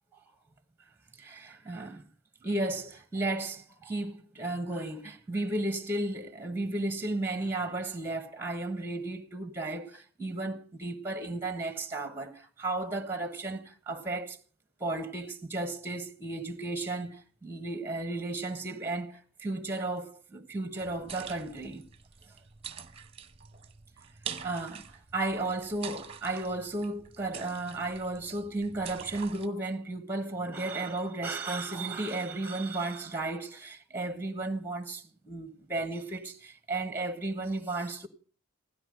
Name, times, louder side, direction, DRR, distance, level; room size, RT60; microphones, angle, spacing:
voice 1, 1.1-2.0 2.4-14.4 14.8-21.8 22.3-22.4 24.4-38.1, right 2 dB, 10° right, 1.3 m, -34 dB
sound 1, 20.8-29.5, right 7 dB, 30° right, 1.0 m, -45 dB
16.5 x 12.5 x 6.3 m
head